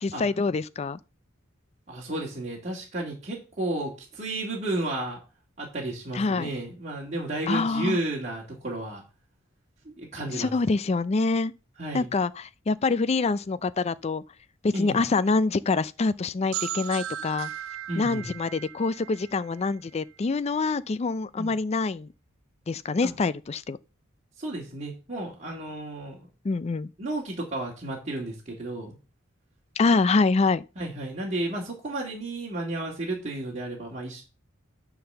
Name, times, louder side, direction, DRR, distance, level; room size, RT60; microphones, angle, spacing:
voice 1, 0.0-1.0 6.1-6.5 7.5-8.0 10.3-11.5 11.9-14.2 14.6-17.5 18.0-22.1 22.7-23.8 26.4-26.9 29.8-30.6, left 3 dB, 30° left, 0.4 m, -25 dB
voice 2, 1.9-5.2 5.6-9.0 9.9-10.5 11.8-12.1 14.7-15.1 17.9-18.3 21.4-21.5 23.0-23.1 24.4-26.3 27.0-29.0 30.8-34.2, right 2 dB, 35° right, 2.1 m, -32 dB
sound 1, 16.5-20.2, right 11 dB, 80° right, 0.5 m, -37 dB
9.6 x 3.9 x 6.7 m
head